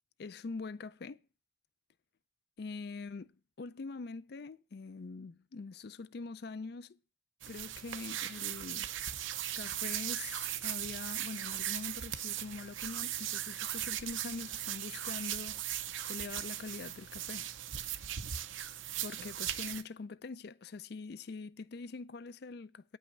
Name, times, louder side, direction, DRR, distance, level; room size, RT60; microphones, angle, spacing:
voice 1, 0.2-1.2 2.6-7.0 7.5-8.9 9.6-17.5 19.0-23.0, left 4 dB, 55° left, 0.4 m, -44 dB
sound 1, 7.4-19.8, right 11 dB, 85° right, 0.7 m, -38 dB
9.5 x 5.6 x 7.7 m
head